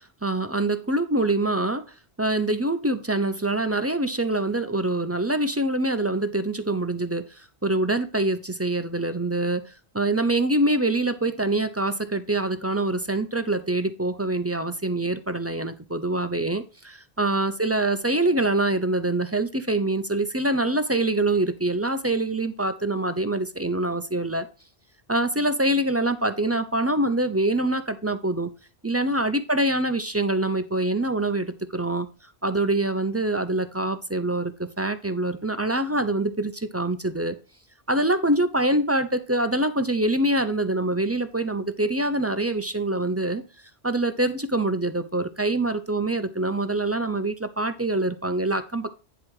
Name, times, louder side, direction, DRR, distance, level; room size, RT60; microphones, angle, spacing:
voice 1, 0.0-1.8 2.2-24.5 25.1-28.5 28.8-32.1 32.4-37.4 37.9-43.4 43.8-48.9, right 2 dB, 15° right, 0.6 m, -25 dB
10.0 x 4.5 x 4.8 m
omnidirectional pair, 1.1 m